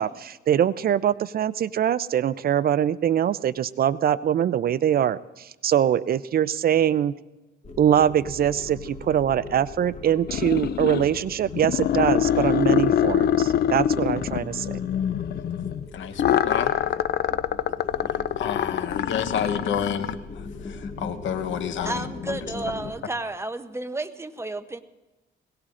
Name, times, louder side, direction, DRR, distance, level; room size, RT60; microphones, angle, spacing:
voice 1, 0.0-7.1 7.8-14.8, right 10 dB, 50° right, 0.4 m, -23 dB
sound 1, 7.6-22.9, left 3 dB, 35° left, 1.7 m, -39 dB
sound 2, 10.3-11.2 11.5-15.9 16.2-20.2, left 10 dB, 55° left, 0.5 m, -24 dB
voice 2, 15.9-16.7 18.4-22.4, left 8 dB, 70° left, 1.0 m, -30 dB
voice 3, 21.8-24.8, right 2 dB, 15° right, 0.7 m, -32 dB
21.5 x 17.5 x 2.5 m
cardioid pair, 90°, 20 cm